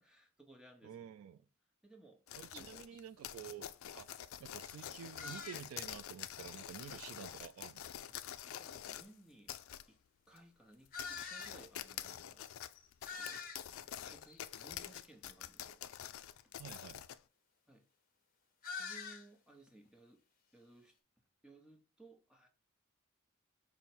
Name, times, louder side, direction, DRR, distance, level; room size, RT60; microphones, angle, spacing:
voice 1, 0.0-0.9 1.8-2.9 3.1-3.3 8.1-9.5 9.9-10.0 10.3-12.4 13.2-15.8 17.7-17.8 18.7-20.2 20.5-20.9 21.4-22.5, right 2 dB, 5° right, 0.9 m, -61 dB
voice 2, 0.8-1.4 2.3-3.7 3.9-4.1 4.4-7.9 16.6-17.1, right 8 dB, 80° right, 0.3 m, -50 dB
sound 1, 2.3-9.1 9.5-9.9 10.4-10.5 10.9-17.2, left 11 dB, 75° left, 0.3 m, -47 dB
sound 2, 2.9-3.0 3.6-3.7 4.0-4.2 5.2-5.9 6.2-6.3 8.0-8.1 8.9-9.0 10.9-11.6 12.1-12.2 12.4-12.5 12.7-13.8 14.3-14.7 18.6-19.3, left 5 dB, 45° left, 0.9 m, -46 dB
5.3 x 2.1 x 4.4 m
head